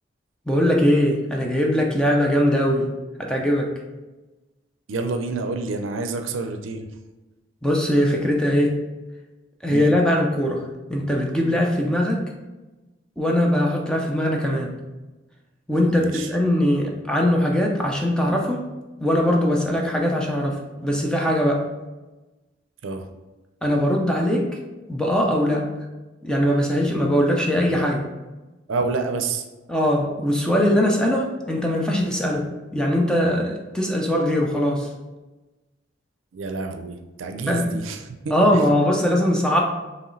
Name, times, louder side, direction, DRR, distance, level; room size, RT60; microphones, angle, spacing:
voice 1, 0.5-2.9 3.2-3.7 7.6-8.8 9.6-12.3 13.2-14.7 15.7-18.6 19.0-21.7 23.6-24.6 24.9-25.7 26.2-28.0 29.7-34.9 37.5-37.7 38.3-39.6, equal, 5° left, 0 dB, 0.5 m, -21 dB
voice 2, 4.9-6.9 9.7-9.9 15.9-16.3 22.8-23.1 28.7-29.4 36.3-38.6, right 3 dB, 85° right, 6 dB, 0.5 m, -28 dB
4.7 x 3.1 x 3.1 m, 1.1 s
head